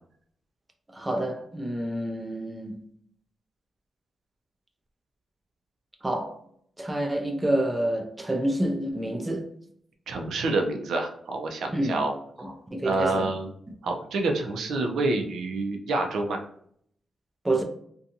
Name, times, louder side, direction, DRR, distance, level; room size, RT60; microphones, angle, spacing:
voice 1, 0.9-2.8 6.0-6.4 6.8-9.5 11.7-12.0 12.4-13.3 17.4-17.6, right 1 dB, 10° right, 0.3 m, -28 dB
voice 2, 10.1-12.1 12.8-13.5 13.8-16.4, right 2 dB, 75° right, 0.5 m, -27 dB
2.5 x 2.3 x 2.7 m
wide cardioid pair, 160°, 0 cm